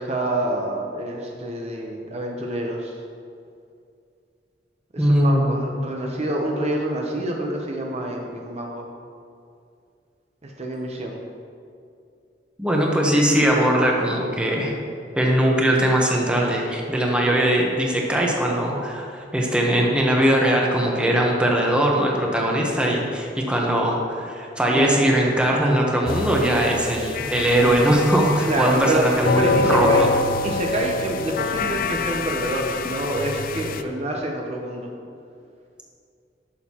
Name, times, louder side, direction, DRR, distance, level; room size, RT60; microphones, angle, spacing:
voice 1, 0.0-2.9 4.9-8.9 10.4-11.2 17.2-17.4 24.7-24.9 28.4-29.0 29.4-30.1 30.4-34.9, right 1 dB, 40° right, 0 dB, 0.7 m, -27 dB
voice 2, 5.0-5.5 12.6-14.7 15.1-30.1, right 1 dB, 5° right, -1 dB, 0.9 m, -20 dB
sound 1, 26.1-33.8, left 3 dB, 55° left, 0.4 m, -26 dB
11.5 x 6.4 x 2.9 m, 2.4 s
head